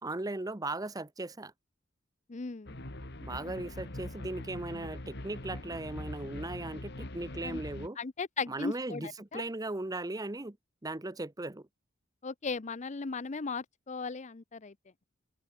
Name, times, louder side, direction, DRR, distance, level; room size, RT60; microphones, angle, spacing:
voice 1, 0.0-1.5 3.2-8.0 8.5-10.6 10.8-11.7, right 2 dB, 20° right, 0.8 m, -37 dB
voice 2, 2.3-2.8 7.4-7.6 8.0-9.4 12.2-14.7, left 4 dB, 35° left, 0.6 m, -37 dB
sound 1, 2.7-7.9, left 1 dB, 55° left, 2.4 m, -42 dB
open air
head